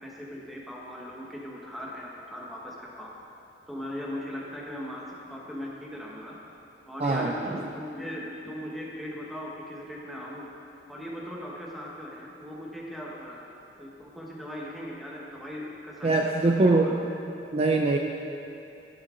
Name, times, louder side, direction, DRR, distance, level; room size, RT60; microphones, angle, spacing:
voice 1, 0.0-3.1 3.7-6.4 6.9-10.5 10.9-13.4 13.7-17.3, equal, ahead, -4 dB, 1.1 m, -39 dB
voice 2, 7.0-7.6 16.0-17.0 17.5-18.0, right 2 dB, 35° right, 2 dB, 0.4 m, -23 dB
12.5 x 6.9 x 3.8 m, 2.7 s
head